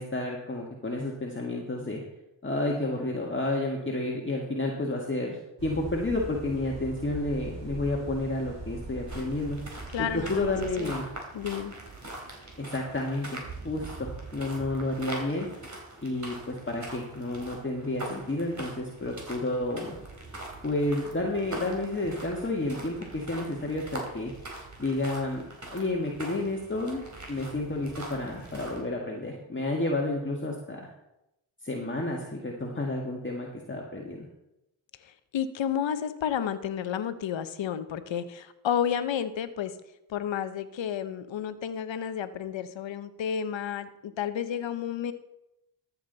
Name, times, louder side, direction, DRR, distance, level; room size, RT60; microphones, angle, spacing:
voice 1, 0.0-2.0 2.4-9.6 10.0-11.1 12.6-15.5 16.0-19.9 20.6-24.3 24.8-25.4 25.7-27.0 27.3-30.9 31.6-34.3, left 2 dB, 25° left, -1 dB, 1.8 m, -31 dB
sound 1, 5.6-10.7, right 2 dB, 60° right, 3.9 m, -41 dB
sound 2, 9.1-28.8, right 2 dB, 35° right, 3.9 m, -42 dB
voice 2, 9.9-10.9 11.3-11.7 35.0-39.7 40.1-45.1, left 8 dB, 70° left, 12 dB, 1.0 m, -31 dB
13.5 x 7.4 x 4.0 m, 0.88 s
supercardioid pair, 50°, 47 cm